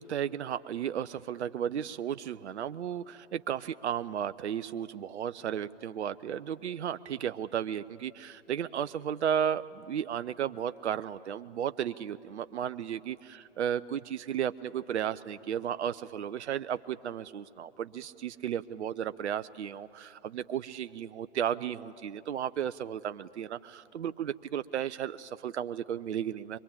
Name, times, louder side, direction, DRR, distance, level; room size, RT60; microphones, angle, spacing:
voice 1, 0.0-26.6, right 9 dB, 70° right, 13 dB, 0.6 m, -34 dB
24.0 x 23.0 x 8.5 m, 2.7 s
figure-of-eight pair, 120°, 35 cm